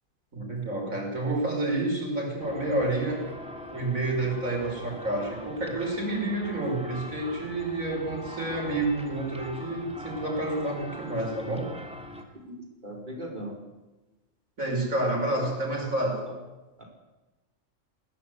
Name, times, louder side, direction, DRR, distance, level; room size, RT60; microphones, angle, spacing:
voice 1, 0.3-3.3 3.7-11.7 14.6-16.2, right 2 dB, 80° right, 1 dB, 5.9 m, -29 dB
sound 1, 2.4-12.2, left 1 dB, 5° right, 2.7 m, -42 dB
voice 2, 12.4-13.5 16.2-16.3 16.8-16.9, right 1 dB, 35° right, 0 dB, 5.3 m, -39 dB
21.0 x 17.5 x 8.3 m, 1.1 s
omnidirectional pair, 1.4 m